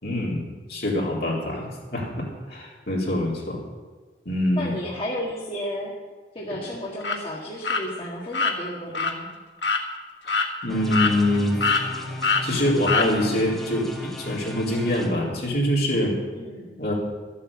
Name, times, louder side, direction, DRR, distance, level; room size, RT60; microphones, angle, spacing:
voice 1, 0.0-3.6 4.3-4.7 10.2-10.4 10.6-11.5 12.4-16.1 16.8-16.9, left 1 dB, 60° left, -3 dB, 4.0 m, -25 dB
voice 2, 4.6-6.0 6.3-9.3 16.3-16.7, equal, 30° left, -4 dB, 1.9 m, -33 dB
sound 1, 7.0-7.2 7.6-7.8 8.3-8.5 8.9-9.1 9.6-9.8 10.3-10.5 10.9-11.4 11.6-11.8 12.2-12.4 12.9-13.1, left 4 dB, 85° left, 1.5 m, -23 dB
sound 2, 10.7-15.1, left 1 dB, ahead, 2.1 m, -36 dB
13.5 x 8.5 x 8.8 m, 1.4 s
head